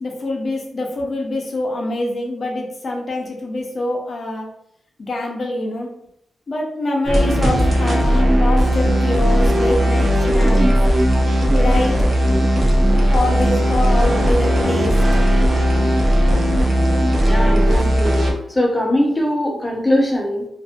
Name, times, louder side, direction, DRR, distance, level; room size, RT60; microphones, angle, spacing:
voice 1, 0.0-4.5 5.0-5.9 6.5-10.7 11.5-12.0 13.1-15.0, left 2 dB, 55° left, 0 dB, 0.7 m, -25 dB
sound 1, 7.1-18.3, equal, 45° right, 0.6 m, -16 dB
voice 2, 17.3-18.2 18.5-20.5, left 1 dB, 20° left, -1 dB, 0.6 m, -20 dB
2.6 x 2.5 x 2.5 m, 0.76 s
cardioid pair, 75°, 0 cm